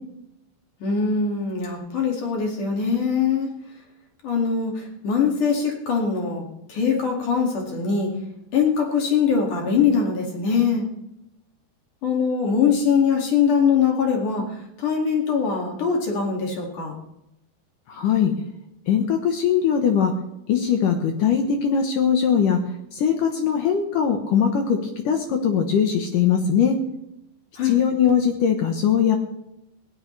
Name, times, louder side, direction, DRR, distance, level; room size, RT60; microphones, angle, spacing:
voice 1, 0.8-3.5 4.2-6.4 6.7-8.1 8.5-10.9 12.0-16.9 27.6-27.8, left 6 dB, 50° left, 0 dB, 3.5 m, -22 dB
voice 2, 17.9-18.3 18.9-20.1 20.5-22.6 22.9-24.8 25.0-26.8 27.6-29.2, left 8 dB, 65° left, 4 dB, 2.2 m, -20 dB
18.5 x 18.0 x 3.3 m, 0.86 s
omnidirectional pair, 5.0 m